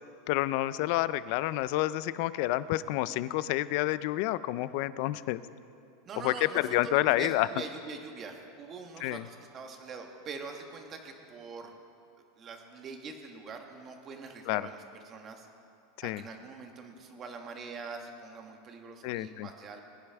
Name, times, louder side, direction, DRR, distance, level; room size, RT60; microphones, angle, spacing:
voice 1, 0.3-5.4 6.2-6.3 6.7-7.5 9.0-9.2 14.5-14.7 16.0-16.2 19.0-19.5, left 16 dB, 55° left, 16 dB, 0.4 m, -29 dB
voice 2, 6.0-11.7 12.4-15.5 16.0-19.8, right 4 dB, 25° right, 4 dB, 1.3 m, -44 dB
22.0 x 11.0 x 3.5 m, 2.6 s
supercardioid pair, 160°, 0 cm